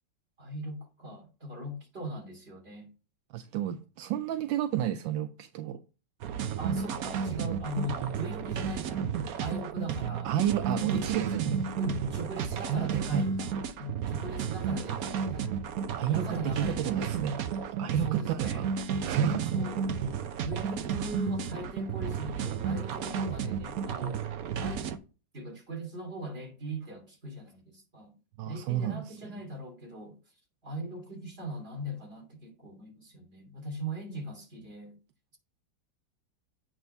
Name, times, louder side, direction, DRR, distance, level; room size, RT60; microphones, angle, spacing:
voice 1, 0.4-2.9 6.6-9.1 9.4-10.3 10.8-11.0 11.8-15.6 16.1-17.0 18.0-18.7 19.5-19.9 20.4-24.2 24.6-24.9 25.3-28.1 28.4-30.2 30.6-35.0, right 1 dB, 30° right, 3.0 m, -40 dB
voice 2, 3.3-5.8 10.2-11.6 12.4-13.3 15.9-18.7 19.0-19.5 28.4-29.4, right 9 dB, 80° right, 1.3 m, -31 dB
sound 1, 6.2-25.0, right 6 dB, 65° right, 1.0 m, -32 dB
8.7 x 3.8 x 5.2 m
omnidirectional pair, 2.0 m